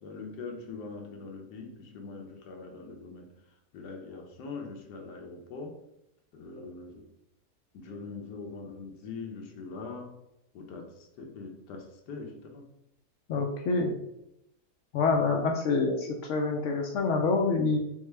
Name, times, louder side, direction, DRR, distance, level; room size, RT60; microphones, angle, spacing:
voice 1, 0.0-3.3 3.7-5.7 6.3-7.1 7.7-10.1 10.5-12.6, left 4 dB, 90° left, 2 dB, 1.3 m, -42 dB
voice 2, 13.3-13.9 14.9-17.8, left 4 dB, 70° left, 2 dB, 0.7 m, -26 dB
3.6 x 3.4 x 3.2 m, 0.83 s
omnidirectional pair, 1.7 m